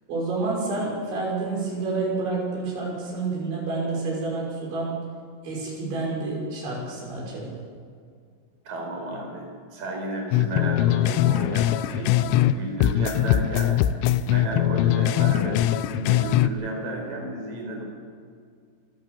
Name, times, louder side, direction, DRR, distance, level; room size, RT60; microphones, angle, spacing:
voice 1, 0.1-5.0 5.4-7.5, right 3 dB, 75° right, -2 dB, 8.4 m, -29 dB
voice 2, 8.6-13.8 14.0-17.8, right 1 dB, 50° right, 0 dB, 6.2 m, -33 dB
sound 1, 10.3-12.5 12.8-16.5, left 12 dB, 80° left, 2.9 m, -21 dB
26.0 x 14.5 x 7.1 m, 2.1 s
omnidirectional pair, 5.4 m